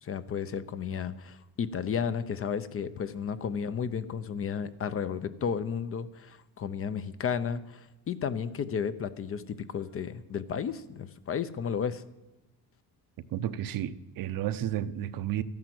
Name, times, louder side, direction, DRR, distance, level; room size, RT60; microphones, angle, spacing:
voice 1, 0.0-12.0, left 7 dB, 35° left, 0.7 m, -33 dB
voice 2, 13.3-15.4, right 11 dB, 65° right, 0.8 m, -32 dB
13.5 x 10.5 x 7.8 m
cardioid pair, 165°, 37 cm